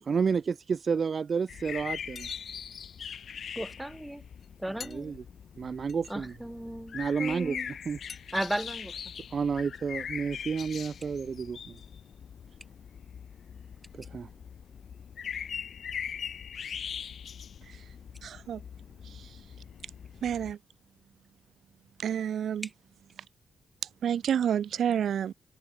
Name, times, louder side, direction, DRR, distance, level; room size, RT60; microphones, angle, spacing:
voice 1, 0.0-2.3 4.9-5.2 5.6-6.3 6.9-7.6 7.8-8.0 9.3-11.8 13.9-14.3, right 5 dB, 45° right, 1.2 m, -30 dB
sound 1, 1.5-20.5, left 7 dB, 60° left, 2.5 m, -41 dB
sound 2, 1.7-1.8 2.2-2.9 3.8-3.9 4.4-4.5 4.8-5.0 5.9-6.1 8.1-8.3, left 5 dB, 40° left, 4.1 m, -45 dB
voice 2, 3.6-4.2 4.6-5.1 6.1-7.7 8.3-9.0 22.6-22.7, right 1 dB, 5° right, 7.9 m, -35 dB
voice 3, 18.2-18.6 19.1-19.3 20.2-20.6 22.0-22.7 24.0-25.3, right 9 dB, 75° right, 2.3 m, -29 dB
wide cardioid pair, 140°, 0 cm